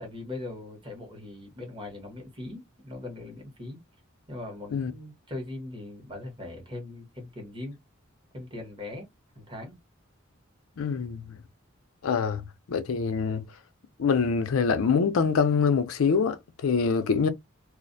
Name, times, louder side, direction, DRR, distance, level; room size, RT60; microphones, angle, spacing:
voice 1, 0.0-3.8 4.3-7.8 8.3-9.1 9.3-9.8, left 2 dB, 25° right, 1.1 m, -40 dB
voice 2, 10.8-11.4 12.0-12.4 12.7-13.5 14.0-17.3, left 5 dB, 90° left, 0.4 m, -25 dB
2.4 x 2.1 x 2.5 m
head